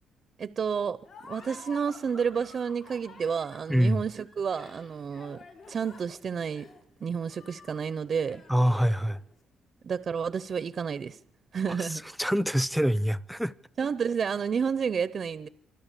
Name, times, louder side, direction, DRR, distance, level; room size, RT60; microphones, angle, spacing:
voice 1, 0.4-5.4 5.7-6.7 7.0-8.4 9.8-11.2 11.5-12.0 13.8-15.5, right 6 dB, 50° right, 0.7 m, -30 dB
Laughter, 1.0-9.3, left 4 dB, 70° left, 6.0 m, -51 dB
voice 2, 3.7-4.0 8.5-9.2 11.8-11.9 12.2-13.5, equal, ahead, 0.7 m, -25 dB
26.5 x 12.0 x 8.4 m
cardioid pair, 90°, 0 cm